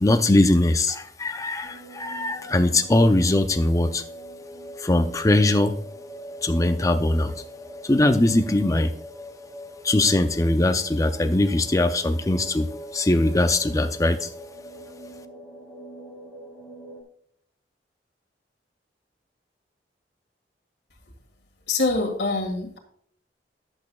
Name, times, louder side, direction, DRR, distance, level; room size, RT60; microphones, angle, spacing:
voice 1, 0.0-4.0 4.8-5.7 6.4-7.3 7.8-8.9 9.8-12.7 12.9-14.3, left 2 dB, 20° left, 7 dB, 0.5 m, -21 dB
sound 1, 1.6-17.0, equal, 5° right, 1.8 m, -42 dB
voice 2, 21.7-22.8, left 3 dB, 70° left, 2 dB, 1.8 m, -24 dB
10.5 x 8.0 x 2.3 m, 0.66 s
head